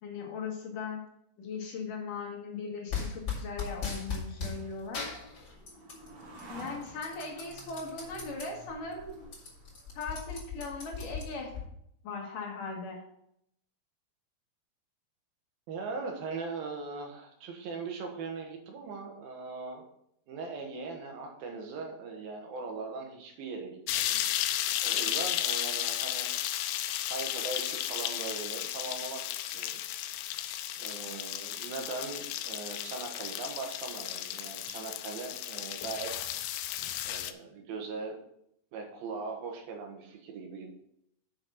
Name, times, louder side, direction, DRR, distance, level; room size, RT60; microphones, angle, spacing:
voice 1, 0.0-1.0 1.4-5.1 6.5-9.3 9.9-11.5 12.0-13.0, left 4 dB, 65° left, 0 dB, 2.8 m, -39 dB
sound 1, 2.9-4.6 4.9-6.1 6.4-8.5 8.9-9.0 9.2-11.6, left 6 dB, 35° left, 2.6 m, -37 dB
sound 2, 3.1-10.5, right 1 dB, 35° right, 1.8 m, -52 dB
voice 2, 15.7-19.8 20.3-24.2 24.8-26.3 26.9-29.8 30.8-36.3 37.1-38.2 38.7-40.7, right 4 dB, 70° right, 2 dB, 3.1 m, -40 dB
sound 3, 23.9-37.3, left 12 dB, 85° left, 2.6 m, -34 dB
7.3 x 6.5 x 5.7 m, 0.74 s
omnidirectional pair, 4.5 m